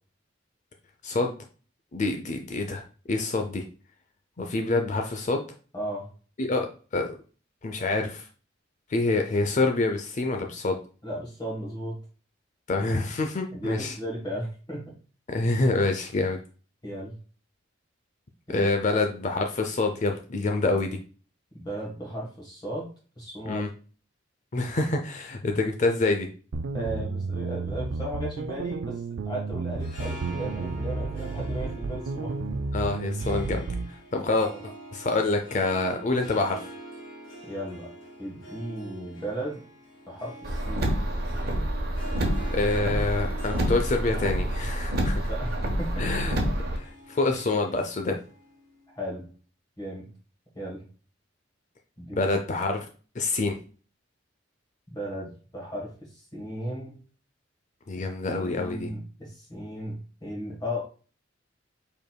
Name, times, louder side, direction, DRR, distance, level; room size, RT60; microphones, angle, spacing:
voice 1, 1.9-2.8 3.1-3.6 4.4-5.4 6.4-6.7 6.9-7.1 7.6-8.3 8.9-10.8 12.7-14.0 15.3-16.4 18.5-21.0 23.5-23.7 24.5-26.3 32.7-33.7 34.1-34.5 34.9-36.7 42.5-45.3 46.0-46.4 46.7-48.2 52.1-52.8 53.2-53.6 57.9-58.9, left 2 dB, 40° left, 4 dB, 0.5 m, -26 dB
voice 2, 5.7-6.1 11.0-12.0 13.5-14.9 16.8-17.2 18.5-18.7 21.5-22.9 23.2-23.7 26.7-29.0 29.2-32.4 37.4-37.9 38.2-39.6 40.1-41.0 45.3-46.1 48.9-49.3 49.8-50.1 50.5-50.9 52.0-52.3 54.9-56.9 58.0-58.1 58.4-60.8, equal, 20° left, -2 dB, 1.4 m, -35 dB
sound 1, 26.5-33.9, right 3 dB, 80° right, 0.4 m, -32 dB
Harp, 29.7-49.0, right 1 dB, 90° left, 2.2 m, -45 dB
Car, 40.4-46.8, right 1 dB, 55° right, 1.1 m, -28 dB
5.2 x 4.5 x 2.3 m, 0.38 s
head